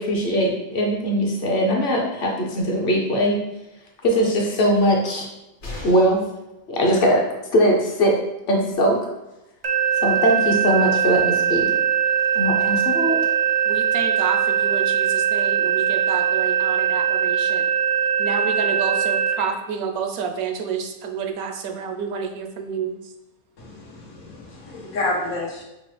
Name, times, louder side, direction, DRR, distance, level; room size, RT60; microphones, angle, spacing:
voice 1, 0.0-3.4 4.0-5.3 5.8-6.2 6.7-7.3 7.5-8.2 8.5-9.1 10.0-11.7 12.3-13.2, equal, 50° left, 0 dB, 0.8 m, -20 dB
sound 1, 5.6-6.3 8.3-8.4 8.7-8.8, left 2 dB, 65° left, 1.4 m, -36 dB
sound 2, 9.6-19.3, right 8 dB, 45° right, 0.5 m, -21 dB
voice 2, 13.7-17.6 18.2-23.0, right 6 dB, 90° right, 4 dB, 1.1 m, -29 dB
voice 3, 23.6-25.6, left 2 dB, 85° left, -3 dB, 1.5 m, -29 dB
5.9 x 2.1 x 3.2 m, 0.95 s
omnidirectional pair, 1.5 m